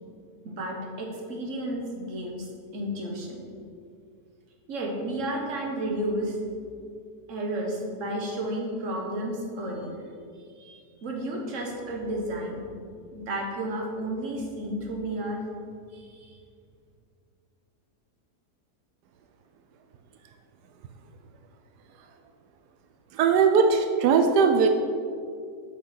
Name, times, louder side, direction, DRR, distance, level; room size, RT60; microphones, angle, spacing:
voice 1, 0.4-2.5 2.7-3.4 4.7-6.4 7.3-10.0 10.6-12.6 13.1-15.4 15.9-16.4, right 1 dB, 50° right, 0 dB, 1.6 m, -32 dB
voice 2, 23.1-24.7, right 5 dB, 90° right, 6 dB, 1.2 m, -20 dB
8.3 x 5.9 x 5.9 m, 2.3 s
omnidirectional pair, 1.7 m